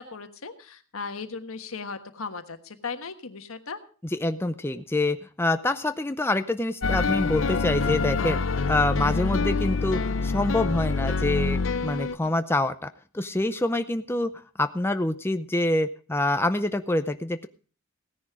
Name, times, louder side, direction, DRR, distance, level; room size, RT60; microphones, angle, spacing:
voice 1, 0.0-3.8 12.2-12.3, left 4 dB, 85° left, 8 dB, 1.4 m, -37 dB
voice 2, 4.0-14.3 14.6-17.5, left 2 dB, 10° left, 9 dB, 0.5 m, -26 dB
sound 1, 6.8-12.2, left 4 dB, 65° left, 0.7 m, -26 dB
17.0 x 10.0 x 4.8 m, 0.40 s
head